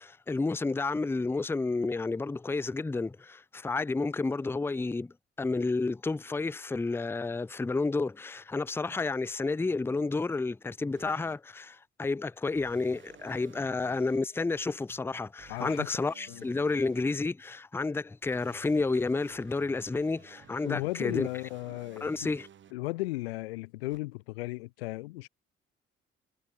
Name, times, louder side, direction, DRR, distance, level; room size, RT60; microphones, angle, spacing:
voice 1, 0.0-21.3 22.0-22.5, left 3 dB, 5° left, 0.5 m, -31 dB
sound 1, 10.9-11.4 12.5-14.2 15.4-17.0 18.2-22.7 23.9-24.0, right 9 dB, 35° right, 1.1 m, -55 dB
voice 2, 15.5-15.9 16.3-16.4 20.6-22.1 22.7-25.3, left 21 dB, 70° left, 0.6 m, -35 dB
figure-of-eight pair, 45°, 32 cm